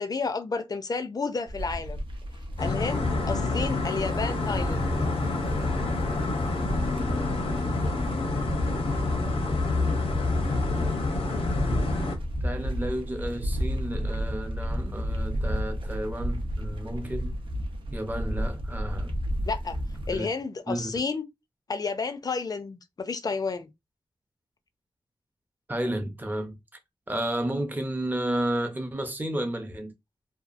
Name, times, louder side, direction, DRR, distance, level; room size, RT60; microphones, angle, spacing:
voice 1, 0.0-2.0 2.6-4.9 19.5-19.8 20.1-21.3 21.7-23.7, left 4 dB, 40° left, 0.4 m, -31 dB
sound 1, 1.5-20.2, equal, 60° right, 0.6 m, -33 dB
sound 2, 2.6-12.2, left 3 dB, 85° left, 0.7 m, -27 dB
voice 2, 12.4-17.4 17.9-19.2 20.1-20.3 20.7-21.0 25.7-26.6 27.1-30.0, right 1 dB, 20° right, 0.6 m, -32 dB
2.7 x 2.3 x 2.4 m
wide cardioid pair, 115°, 10 cm